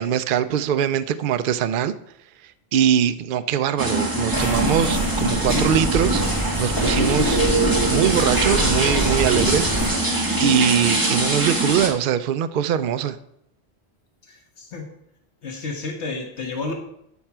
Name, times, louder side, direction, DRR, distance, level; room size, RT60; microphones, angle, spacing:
voice 1, 0.0-1.9 2.7-6.2 6.6-7.4 7.9-10.0 10.4-13.2, right 9 dB, 60° right, 12 dB, 0.7 m, -22 dB
sound 1, 3.8-11.9, right 2 dB, 20° right, 1.7 m, -23 dB
sound 2, 4.3-9.9, right 1 dB, 25° left, 2.7 m, -24 dB
voice 2, 14.3-14.9 15.4-16.7, left 3 dB, 85° left, 2 dB, 1.7 m, -31 dB
13.0 x 4.5 x 6.0 m, 0.75 s
omnidirectional pair, 1.1 m